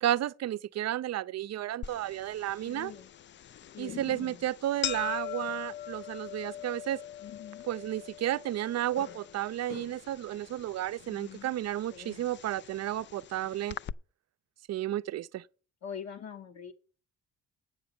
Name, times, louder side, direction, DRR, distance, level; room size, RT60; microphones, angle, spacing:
voice 1, 0.0-2.9 3.8-7.0 7.7-13.8 14.7-15.5, right 12 dB, 60° right, 0.5 m, -32 dB
sound 1, 1.8-13.9, left 10 dB, 40° left, 0.4 m, -42 dB
voice 2, 2.7-3.1 3.7-4.4 7.2-7.7 11.0-11.5 11.9-12.2 15.8-16.7, left 7 dB, 60° left, 1.1 m, -44 dB
8.7 x 6.8 x 6.8 m
cardioid pair, 90°, 30 cm